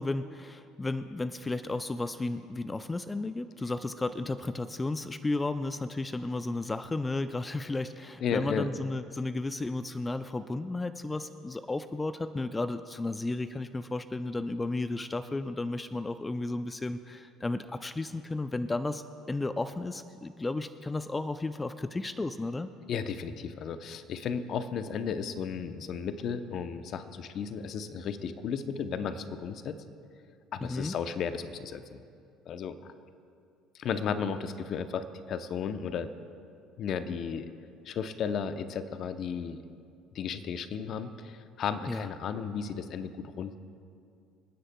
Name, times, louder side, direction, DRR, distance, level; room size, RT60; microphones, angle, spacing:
voice 1, 0.0-22.7 30.6-30.9 41.9-42.1, left 2 dB, 20° left, 11 dB, 0.5 m, -33 dB
voice 2, 8.2-8.7 22.9-29.8 30.5-32.0 32.5-32.9 33.7-36.1 36.8-37.5 37.8-39.6 40.1-43.6, left 6 dB, 55° left, 10 dB, 0.7 m, -34 dB
28.0 x 9.9 x 2.3 m, 2.4 s
hypercardioid pair, 65°, 0 cm